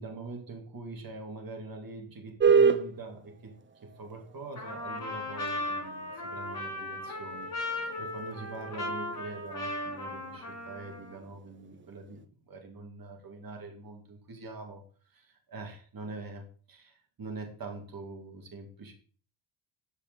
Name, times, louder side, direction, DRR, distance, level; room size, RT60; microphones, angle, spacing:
voice 1, 0.0-3.6 3.8-18.9, right 3 dB, 45° right, 3 dB, 2.6 m, -44 dB
sound 1, 2.4-12.3, right 6 dB, 25° right, 0.8 m, -32 dB
Trumpet, 4.5-11.2, left 2 dB, 40° left, 4.6 m, -37 dB
7.2 x 5.6 x 5.3 m, 0.41 s
cardioid pair, 80°, 50 cm